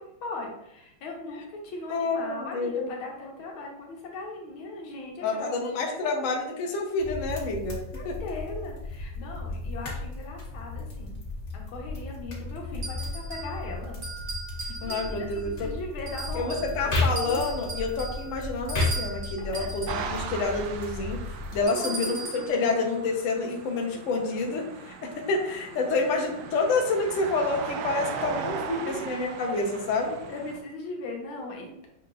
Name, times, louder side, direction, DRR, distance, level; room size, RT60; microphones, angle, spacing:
voice 1, 0.0-6.3 7.9-11.2 11.5-14.0 14.6-17.5 19.1-19.7 21.6-22.7 24.0-24.1 25.7-26.5 28.5-29.3 30.3-31.9, left 2 dB, 90° left, 0 dB, 1.7 m, -39 dB
voice 2, 1.9-2.9 5.2-7.8 8.0-8.1 14.8-15.7 16.3-21.2 21.5-30.2, left 3 dB, 65° left, 1 dB, 0.7 m, -28 dB
sound 1, 7.0-21.6, left 2 dB, 45° left, 1.2 m, -34 dB
sound 2, 12.8-13.6 14.0-15.4 16.1-16.8 17.2-20.1 21.7-22.5, right 3 dB, 50° right, 1.4 m, -38 dB
sound 3, 19.9-30.6, right 5 dB, 80° right, 1.4 m, -38 dB
6.1 x 2.9 x 2.4 m, 0.82 s
omnidirectional pair, 2.2 m